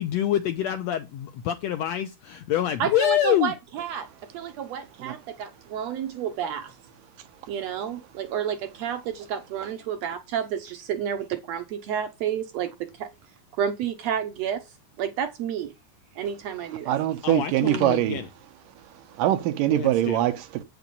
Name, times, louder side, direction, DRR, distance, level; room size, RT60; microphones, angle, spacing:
voice 1, 0.0-3.5 17.2-18.3 19.7-20.2, left 11 dB, 85° left, 1.5 m, -26 dB
voice 2, 2.8-6.7 7.5-13.1 13.6-14.6 15.0-15.7 16.2-16.9 17.7-18.0, right 8 dB, 75° right, 1.6 m, -30 dB
voice 3, 16.9-18.3 18.8-20.6, right 14 dB, 90° right, 2.5 m, -24 dB
8.3 x 5.9 x 5.3 m
omnidirectional pair, 3.7 m